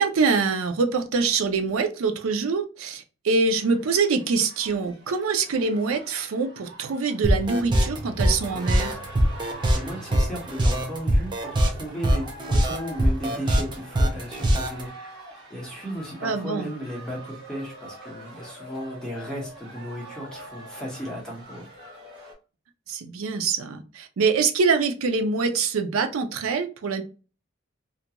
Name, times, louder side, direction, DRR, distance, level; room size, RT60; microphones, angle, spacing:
voice 1, 0.0-9.0 16.2-16.7 22.9-27.0, right 4 dB, 80° right, 0.4 m, -24 dB
sound 1, 3.6-22.3, right 1 dB, 55° right, 1.3 m, -44 dB
sound 2, 7.2-14.8, right 1 dB, 25° right, 0.4 m, -22 dB
voice 2, 9.7-14.9 15.5-21.7, equal, 5° left, 0.9 m, -35 dB
2.4 x 2.2 x 2.8 m
head